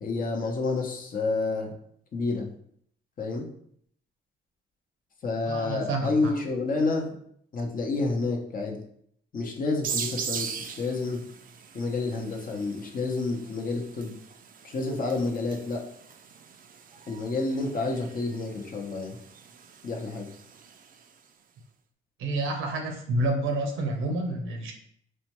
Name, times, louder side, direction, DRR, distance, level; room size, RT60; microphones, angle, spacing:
voice 1, 0.0-1.7 2.1-2.5 3.2-3.5 5.2-7.2 7.5-8.8 9.3-11.2 11.7-14.1 14.6-15.8 17.1-19.2 19.8-20.3, left 3 dB, 45° left, 0 dB, 0.8 m, -29 dB
voice 2, 5.5-6.3 22.2-24.7, right 2 dB, 85° right, 3 dB, 0.7 m, -29 dB
sound 1, 9.8-21.2, right 7 dB, 45° right, 0.4 m, -40 dB
4.3 x 2.2 x 3.0 m, 0.66 s
cardioid pair, 90°, 20 cm